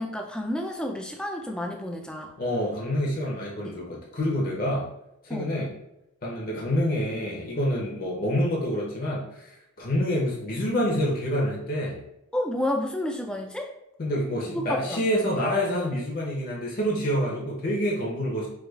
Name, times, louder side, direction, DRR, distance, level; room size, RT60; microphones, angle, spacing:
voice 1, 0.0-2.3 5.3-5.6 12.3-13.7 14.5-15.0, left 1 dB, 5° left, 2 dB, 0.3 m, -30 dB
voice 2, 2.4-4.9 5.2-5.7 6.2-12.0 14.0-18.5, equal, 40° left, -3 dB, 0.7 m, -27 dB
4.7 x 2.3 x 2.3 m, 0.86 s
head